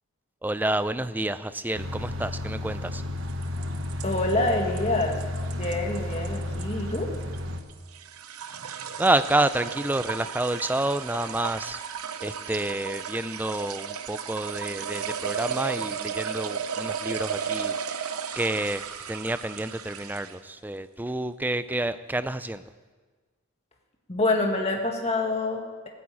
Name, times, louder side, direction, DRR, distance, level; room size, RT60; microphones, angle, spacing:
voice 1, 0.4-3.0 9.0-11.8 12.2-18.1 18.4-22.6, right 1 dB, 10° right, 13 dB, 0.4 m, -29 dB
sound 1, 1.7-7.6, left 1 dB, 55° right, 1.3 m, -32 dB
sound 2, 3.3-20.5, right 7 dB, 80° right, 0.9 m, -34 dB
voice 2, 4.0-5.2 5.5-7.2 24.1-25.9, left 2 dB, 30° left, 2 dB, 1.8 m, -26 dB
16.0 x 9.4 x 8.6 m, 1.4 s
head